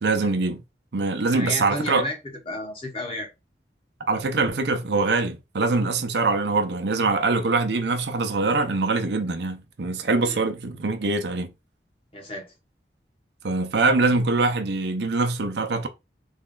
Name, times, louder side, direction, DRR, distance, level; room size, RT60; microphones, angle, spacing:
voice 1, 0.0-0.6 0.9-2.0 4.0-11.5 13.4-15.9, right 3 dB, 70° right, 0.6 m, -23 dB
voice 2, 1.3-2.2 2.4-3.3 10.2-10.4 12.1-12.5, left 2 dB, 30° left, 1.1 m, -32 dB
3.5 x 2.4 x 3.7 m
head